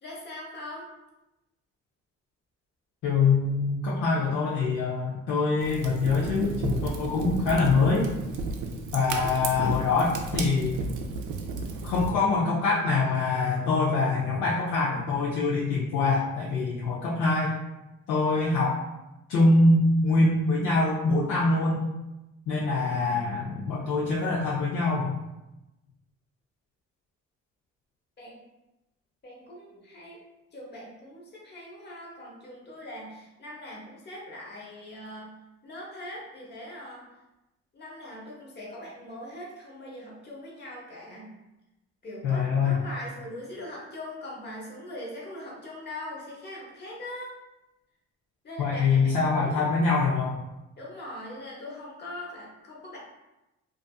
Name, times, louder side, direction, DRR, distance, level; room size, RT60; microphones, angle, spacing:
voice 1, 0.0-0.9 28.2-28.4 29.2-30.2 30.5-35.3 35.6-37.1 37.7-41.3 42.0-47.3 48.4-49.7 50.8-53.0, left 1 dB, 35° left, -3 dB, 0.9 m, -41 dB
voice 2, 3.0-8.1 8.9-10.8 11.8-17.5 18.1-18.8 19.3-21.8 22.5-25.2 42.2-42.8 48.6-50.4, left 3 dB, 80° left, -6 dB, 0.6 m, -24 dB
Fire, 5.6-12.1, right 3 dB, 75° right, 0.5 m, -33 dB
2.5 x 2.4 x 2.3 m, 0.97 s
cardioid pair, 90°, 30 cm